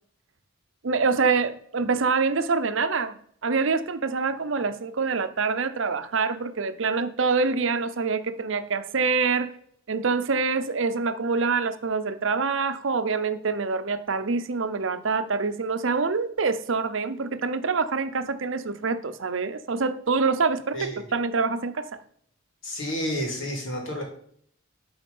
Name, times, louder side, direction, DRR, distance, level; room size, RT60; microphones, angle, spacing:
voice 1, 0.8-9.5 9.9-22.0, right 4 dB, 70° right, 0.7 m, -26 dB
voice 2, 20.7-21.0 22.6-24.0, equal, 70° left, 2.8 m, -30 dB
11.5 x 4.3 x 5.4 m
head